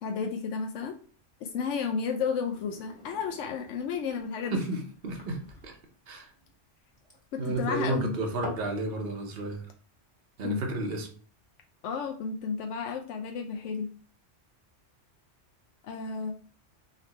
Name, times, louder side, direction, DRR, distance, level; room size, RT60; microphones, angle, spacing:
voice 1, 0.0-1.0 1.4-4.6 7.3-8.2 10.4-10.6 11.8-13.9 15.8-16.3, left 6 dB, 80° left, 3 dB, 0.9 m, -32 dB
sound 1, 2.2-8.7, left 1 dB, 35° left, 1.5 m, -47 dB
voice 2, 4.5-5.7 6.1-6.3 7.4-9.7 10.4-11.1, right 2 dB, 55° right, 2 dB, 1.1 m, -32 dB
3.9 x 3.2 x 4.2 m, 0.43 s
omnidirectional pair, 1.2 m